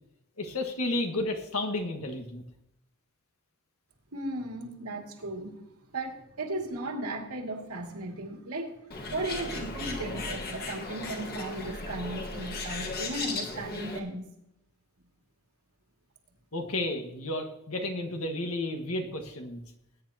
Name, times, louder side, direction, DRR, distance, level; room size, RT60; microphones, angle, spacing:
voice 1, 0.4-2.4 16.5-19.6, left 2 dB, 70° left, 4 dB, 1.7 m, -32 dB
voice 2, 4.1-5.6 5.9-8.7 9.1-14.3, right 1 dB, 90° right, 1 dB, 2.4 m, -36 dB
Bird, 8.9-14.0, left 2 dB, 45° left, 1.5 m, -36 dB
19.5 x 9.7 x 2.9 m, 0.81 s
head